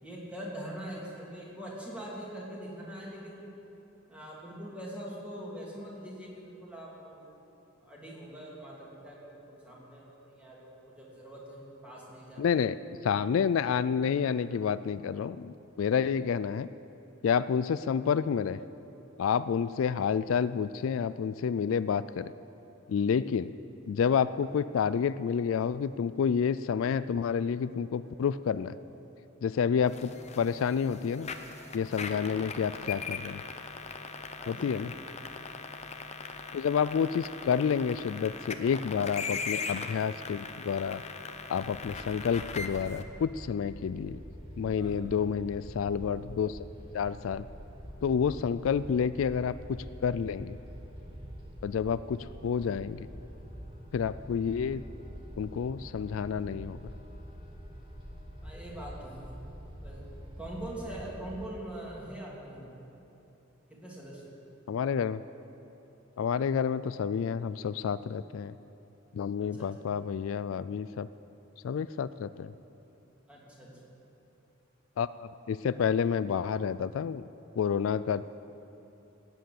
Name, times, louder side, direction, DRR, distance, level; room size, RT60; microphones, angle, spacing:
voice 1, 0.0-3.5 4.1-7.4 7.8-12.5 32.1-32.3 34.4-34.9 44.8-45.0 58.4-59.2 59.8-60.0 60.4-62.7 63.7-64.4 69.5-69.7 73.3-73.7, right 1 dB, 5° right, -5 dB, 3.0 m, -43 dB
voice 2, 12.4-12.8 13.0-16.7 17.2-18.6 19.2-22.3 22.9-23.5 23.9-28.8 29.4-30.1 30.4-31.3 31.7-33.4 34.5-34.9 36.5-41.0 41.5-44.2 44.6-46.6 46.9-47.5 48.0-50.6 51.6-53.1 53.9-54.8 55.4-56.8 64.7-65.2 66.2-68.5 69.1-71.1 71.6-72.5 75.0-77.3 77.6-78.2, left 7 dB, 75° left, 15 dB, 0.3 m, -29 dB
sound 1, 29.9-43.0, left 5 dB, 30° left, 0.8 m, -40 dB
sound 2, 41.6-61.5, equal, 25° right, 1.9 m, -45 dB
16.5 x 9.2 x 7.8 m, 2.9 s
head